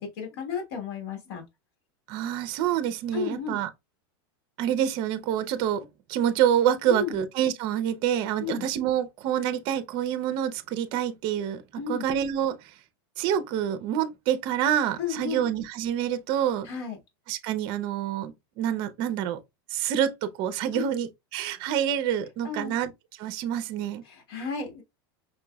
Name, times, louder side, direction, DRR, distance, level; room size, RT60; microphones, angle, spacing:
voice 1, 0.0-1.4 3.1-3.6 6.9-7.2 8.4-8.7 11.8-12.0 15.0-15.4 16.6-17.0 20.7-20.9 22.4-22.8 24.0-24.8, left 5 dB, 75° left, 1.5 m, -33 dB
voice 2, 2.1-3.7 4.6-12.7 13.2-16.7 17.3-19.4 19.7-22.9 23.2-24.0, right 10 dB, 40° right, 0.5 m, -27 dB
5.3 x 2.9 x 2.3 m
supercardioid pair, 160°, 12 cm